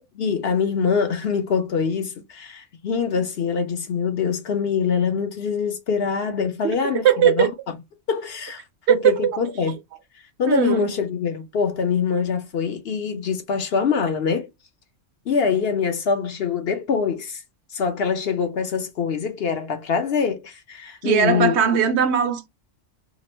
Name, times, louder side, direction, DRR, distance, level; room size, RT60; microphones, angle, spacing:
voice 1, 0.2-7.5 8.1-8.6 8.9-9.8 10.4-14.5 15.3-17.4 17.7-21.6, left 6 dB, 60° left, 0.8 m, -24 dB
voice 2, 7.0-7.5 8.9-9.1 10.5-10.9 21.0-22.5, right 8 dB, 65° right, 1.0 m, -18 dB
2.9 x 2.5 x 4.2 m
omnidirectional pair, 1.3 m